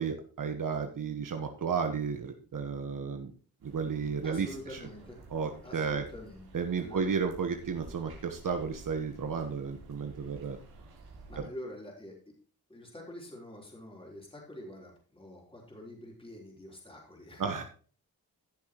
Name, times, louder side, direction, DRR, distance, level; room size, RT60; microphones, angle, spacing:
voice 1, 0.0-3.3 3.6-4.8 5.3-6.0 6.5-10.6 17.4-17.6, right 6 dB, 60° right, 5 dB, 1.3 m, -33 dB
sound 1, 3.6-11.4, right 2 dB, 85° right, 3.8 m, -52 dB
voice 2, 4.2-5.2 5.6-6.5 6.8-7.1 10.2-10.6 11.3-12.3 12.7-17.6, left 1 dB, 15° left, -2 dB, 3.8 m, -46 dB
15.5 x 7.1 x 3.0 m, 0.41 s
cardioid pair, 95°, 37 cm